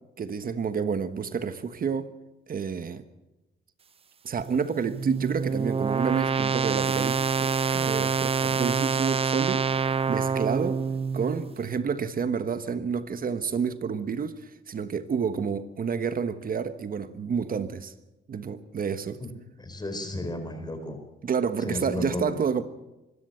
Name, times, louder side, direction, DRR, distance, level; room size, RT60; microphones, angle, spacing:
voice 1, 0.2-2.1 2.5-3.0 4.2-10.8 11.1-17.9 18.3-19.2 21.2-22.6, right 6 dB, 45° right, 12 dB, 1.3 m, -29 dB
sound 1, 4.4-11.5, right 5 dB, 30° right, 0.6 m, -27 dB
voice 2, 19.6-21.0 21.6-22.3, left 1 dB, 20° left, 7 dB, 4.4 m, -33 dB
25.0 x 13.5 x 7.9 m, 1.0 s
cardioid pair, 90°, 20 cm